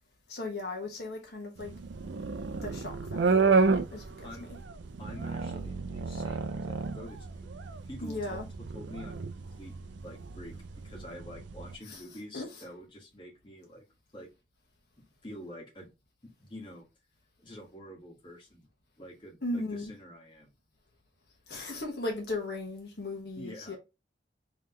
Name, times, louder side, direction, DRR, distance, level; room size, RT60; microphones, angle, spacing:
voice 1, 0.3-1.7 2.6-3.5 3.9-4.3 8.0-8.5 11.9-12.0 12.3-12.6 19.4-19.9 21.5-23.8, left 2 dB, 65° left, 1.2 m, -37 dB
sound 1, 1.6-11.8, right 4 dB, 80° right, 0.4 m, -31 dB
voice 2, 5.0-7.5 7.9-8.4 8.7-9.7 10.0-10.6 10.8-13.8 14.1-14.3 15.0-15.9 16.4-16.9 17.4-18.7 19.0-20.5 23.4-23.8, equal, 25° left, 1.4 m, -47 dB
3.8 x 3.2 x 2.8 m
head